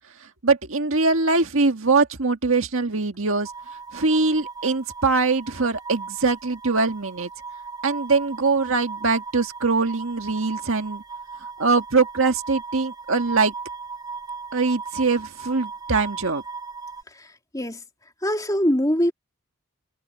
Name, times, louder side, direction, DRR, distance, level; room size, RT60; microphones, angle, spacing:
voice 1, 0.4-3.5 3.9-7.3 7.8-11.0 11.6-13.5 14.5-16.4, right 4 dB, 65° right, 1.7 m, -22 dB
sound 1, 3.4-17.0, right 4 dB, 20° right, 6.4 m, -37 dB
voice 2, 18.2-19.1, equal, 15° left, 2.9 m, -22 dB
head